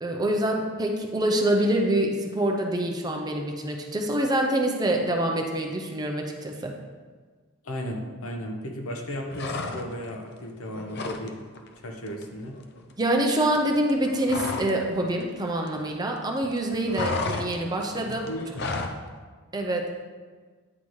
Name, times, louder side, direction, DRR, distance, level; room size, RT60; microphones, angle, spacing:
voice 1, 0.0-6.7 13.0-18.3 19.5-19.8, right 1 dB, 20° right, 1 dB, 0.5 m, -26 dB
voice 2, 7.6-11.4 11.8-12.6 18.3-18.5, equal, 80° left, 2 dB, 0.9 m, -35 dB
sound 1, 9.3-10.1 10.4-11.3 11.6-11.8 12.1-14.8 15.1-16.2 16.4-19.0, left 3 dB, 50° left, 0.5 m, -33 dB
9.5 x 3.9 x 3.1 m, 1.5 s
head